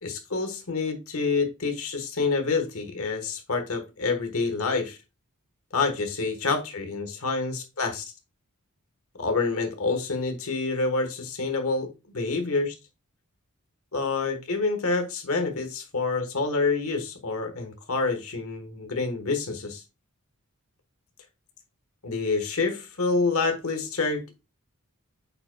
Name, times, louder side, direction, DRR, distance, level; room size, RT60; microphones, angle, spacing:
voice 1, 0.0-5.0 5.7-8.0 9.2-11.9 12.1-12.7 13.9-19.8 22.0-24.3, left 4 dB, 65° left, 1.4 m, -27 dB
8.4 x 5.1 x 2.3 m
head